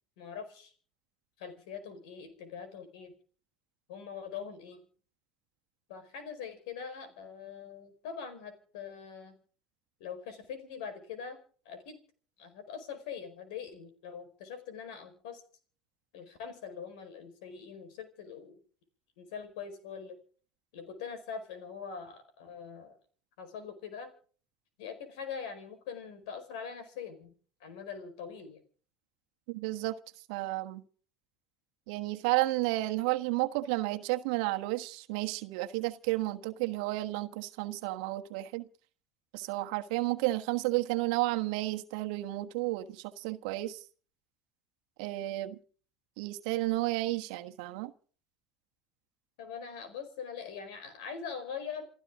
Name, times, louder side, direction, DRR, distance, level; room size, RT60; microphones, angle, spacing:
voice 1, 0.2-0.7 1.4-3.1 3.9-4.8 5.9-9.4 10.0-11.4 11.6-12.0 12.4-15.4 16.1-18.6 19.2-20.2 20.7-23.0 23.4-24.1 24.8-27.3 27.6-28.6 49.4-51.8, left 6 dB, 70° left, 4.8 m, -43 dB
voice 2, 29.5-30.0 30.3-30.8 31.9-38.7 39.3-43.8 45.0-45.6 46.2-47.9, right 19 dB, 70° right, 1.3 m, -32 dB
28.5 x 12.5 x 3.7 m
hypercardioid pair, 75°, 4 cm